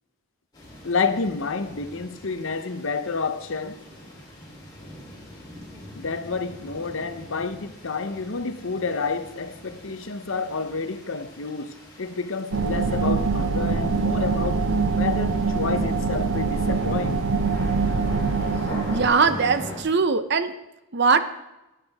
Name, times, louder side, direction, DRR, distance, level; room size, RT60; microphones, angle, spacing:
sound 1, 0.5-19.8, left 1 dB, 20° left, 3.5 m, -42 dB
voice 1, 0.8-3.8 5.9-17.2, left 4 dB, 65° left, 0.8 m, -29 dB
sound 2, 12.5-19.1, right 4 dB, 85° right, 0.8 m, -24 dB
voice 2, 18.9-20.5 20.9-21.2, right 5 dB, 55° right, 0.7 m, -20 dB
17.5 x 10.0 x 3.5 m
head